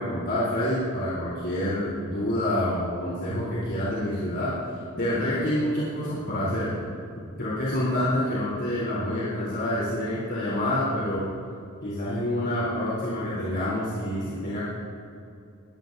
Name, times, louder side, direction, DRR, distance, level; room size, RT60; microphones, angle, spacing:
voice 1, 0.0-4.6 5.0-6.8 7.4-11.3 11.8-14.7, left 1 dB, 50° left, -9 dB, 3.5 m, -27 dB
21.0 x 16.5 x 2.7 m, 2.6 s
head